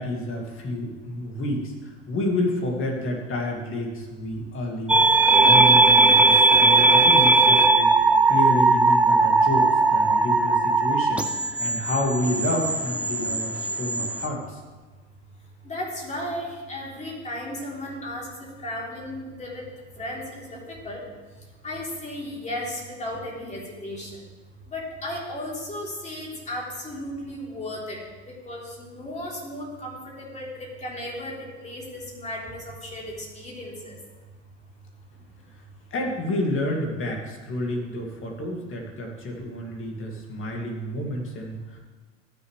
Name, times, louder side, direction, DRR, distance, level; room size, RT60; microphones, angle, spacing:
voice 1, 0.0-5.0 5.3-7.9 8.3-14.6 35.9-41.8, left 1 dB, 35° left, 0 dB, 2.3 m, -29 dB
sound 1, 4.9-14.3, right 3 dB, 5° right, 0.6 m, -18 dB
voice 2, 15.6-19.7 20.0-21.0 21.6-24.2 24.7-28.0 28.3-34.0, left 1 dB, 20° left, -4 dB, 3.5 m, -35 dB
14.5 x 7.0 x 3.3 m, 1.3 s
hypercardioid pair, 95°, 36 cm